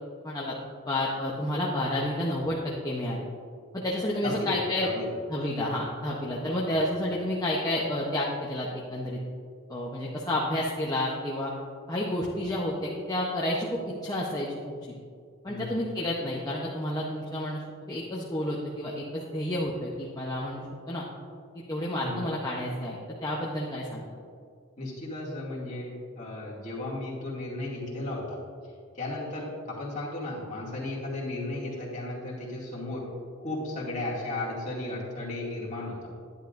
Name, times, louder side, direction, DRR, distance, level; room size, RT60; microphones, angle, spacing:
voice 1, 0.2-0.6 0.9-3.2 3.7-4.9 5.3-9.2 9.7-11.5 11.9-14.8 15.4-21.0 21.5-24.1, left 1 dB, 15° left, -4 dB, 0.8 m, -30 dB
voice 2, 4.2-5.1 6.7-6.9 15.5-15.7 22.0-22.3 24.8-28.4 28.9-33.1 33.4-36.1, left 2 dB, 35° left, -6 dB, 2.3 m, -35 dB
11.0 x 10.5 x 2.6 m, 2.2 s
head